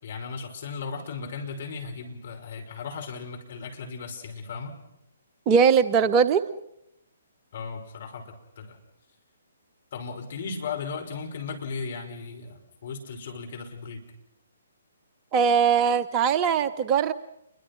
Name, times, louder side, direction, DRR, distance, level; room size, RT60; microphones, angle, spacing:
voice 1, 0.0-4.7 7.5-8.8 9.9-14.0, left 5 dB, 50° left, 4 dB, 5.6 m, -36 dB
voice 2, 5.5-6.4 15.3-17.1, right 6 dB, 25° right, 12 dB, 0.8 m, -20 dB
29.0 x 23.0 x 6.1 m, 0.84 s
figure-of-eight pair, 130°, 0 cm